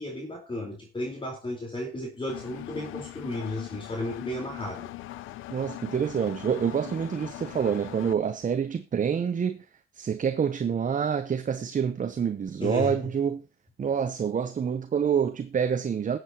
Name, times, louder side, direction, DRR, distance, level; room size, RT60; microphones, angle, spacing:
voice 1, 0.0-4.9 12.6-12.9, left 1 dB, 25° left, 4.4 m, -33 dB
Engine, 2.3-8.1, left 16 dB, 90° left, 0.7 m, -41 dB
voice 2, 5.5-9.6 9.9-13.4 13.8-16.2, right 7 dB, 40° right, 0.9 m, -27 dB
21.0 x 8.0 x 3.0 m
cardioid pair, 90°, 20 cm